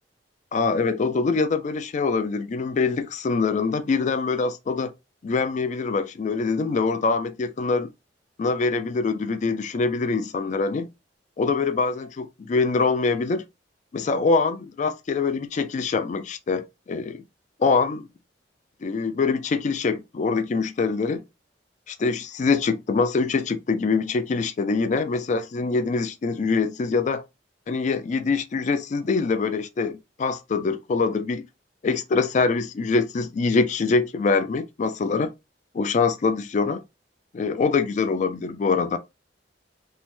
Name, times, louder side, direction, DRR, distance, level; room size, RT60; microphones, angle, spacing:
voice 1, 0.5-4.9 5.2-7.9 8.4-10.9 11.4-13.4 13.9-17.2 17.6-18.1 18.8-21.2 21.9-27.2 27.7-31.5 31.8-35.3 35.7-36.8 37.3-39.0, left 4 dB, 40° left, 0.3 m, -24 dB
2.7 x 2.1 x 3.1 m
head